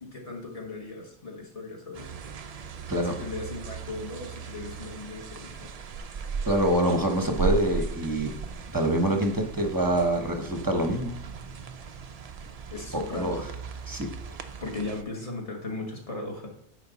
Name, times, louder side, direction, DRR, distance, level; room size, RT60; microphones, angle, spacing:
voice 1, 0.0-2.2 2.9-5.7 12.7-13.5 14.6-16.5, left 2 dB, 30° left, 1 dB, 1.4 m, -37 dB
sound 1, 1.9-15.0, right 5 dB, 65° right, 0.3 m, -37 dB
voice 2, 6.4-8.3 8.7-11.1 12.9-13.4 13.9-14.1, right 1 dB, 20° right, 4 dB, 0.8 m, -25 dB
9.8 x 4.9 x 4.1 m, 0.74 s
omnidirectional pair, 1.3 m